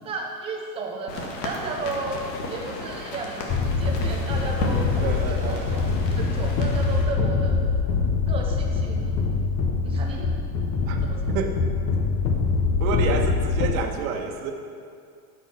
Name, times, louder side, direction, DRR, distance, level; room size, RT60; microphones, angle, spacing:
voice 1, 0.0-2.2 2.5-7.7 8.3-9.2 9.8-10.4 11.0-11.4, right 3 dB, 15° right, 1 dB, 0.4 m, -34 dB
sound 1, 1.1-7.1, left 2 dB, 90° left, 2.2 m, -34 dB
sound 2, 3.5-13.7, left 4 dB, 30° left, 0.7 m, -24 dB
voice 2, 5.0-5.9 10.8-11.0 11.3-11.6 12.8-14.5, right 5 dB, 55° right, 3 dB, 1.5 m, -29 dB
13.0 x 6.4 x 5.8 m, 2.3 s
supercardioid pair, 160°, 48 cm